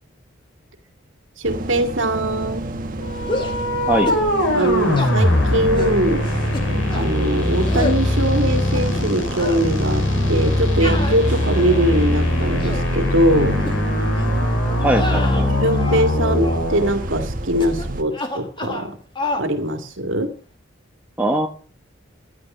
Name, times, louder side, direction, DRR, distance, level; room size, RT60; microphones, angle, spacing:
sound 1, 1.4-18.0, right 1 dB, 40° right, 1.4 m, -30 dB
voice 1, 1.4-2.7 4.5-6.3 6.9-13.6 15.6-19.0 19.4-20.3, right 1 dB, 75° right, 6 dB, 2.2 m, -21 dB
sound 2, 3.0-16.9, left 1 dB, 70° left, 6.4 m, -21 dB
sound 3, 3.3-3.6 4.1-4.3 4.6-5.1 5.8-6.0 6.5-7.1 7.7-8.0 8.5-9.1 9.4-9.6 10.8-11.9 12.4-12.9 13.6-13.8 14.2-14.4 14.9-16.1 16.4-16.7 17.6-17.9 18.1-18.9 19.2-19.5, left 1 dB, 25° left, 1.9 m, -29 dB
voice 2, 14.8-15.5 21.2-21.5, right 1 dB, 5° right, 2 dB, 1.0 m, -20 dB
13.0 x 10.5 x 5.6 m, 0.40 s
head